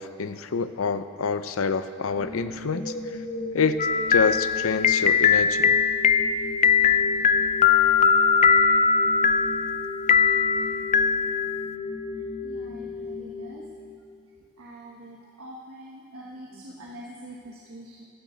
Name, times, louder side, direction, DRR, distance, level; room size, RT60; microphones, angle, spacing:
voice 1, 0.0-3.2 3.5-5.8, left 5 dB, 85° left, 11 dB, 0.6 m, -27 dB
sound 1, 2.1-14.1, left 2 dB, 60° left, 4.1 m, -35 dB
sound 2, 3.8-11.7, left 6 dB, 35° left, 0.4 m, -21 dB
voice 2, 12.4-12.8 13.2-13.6 14.6-18.0, right 1 dB, 85° right, -4 dB, 1.4 m, -44 dB
16.0 x 14.5 x 4.0 m, 2.2 s
head